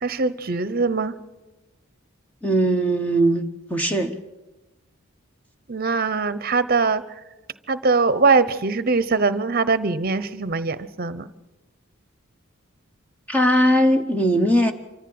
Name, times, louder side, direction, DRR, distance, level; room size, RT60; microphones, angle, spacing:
voice 1, 0.0-1.1 5.7-7.0 7.7-11.3, right 4 dB, 45° right, 15 dB, 0.8 m, -22 dB
voice 2, 2.4-4.2 13.3-14.7, equal, 5° left, 5 dB, 0.8 m, -19 dB
25.5 x 14.0 x 7.8 m, 1.1 s
head